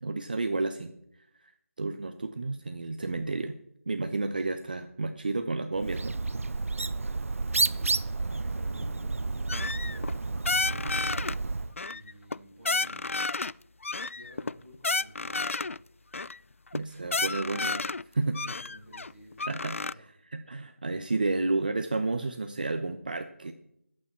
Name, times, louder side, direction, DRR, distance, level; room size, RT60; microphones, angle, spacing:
voice 1, 0.0-0.9 1.4-1.5 1.8-3.6 3.9-6.4 16.7-17.9 18.1-18.4 19.5-23.5, right 3 dB, 35° right, 8 dB, 0.7 m, -31 dB
Bird, 5.8-11.7, right 3 dB, 70° right, 0.5 m, -31 dB
voice 2, 7.3-11.1 11.9-13.1 14.0-15.8 18.2-19.5 19.7-20.0, equal, ahead, -16 dB, 7.1 m, -52 dB
sound 1, 9.5-10.2 10.4-11.4 11.8-12.4 12.6-13.5 13.8-15.8 16.1-16.4 16.7-16.8 17.0-18.0 18.3-19.9, left 3 dB, 65° left, 0.4 m, -31 dB
21.0 x 8.7 x 4.3 m, 0.75 s
figure-of-eight pair, 175°, 8 cm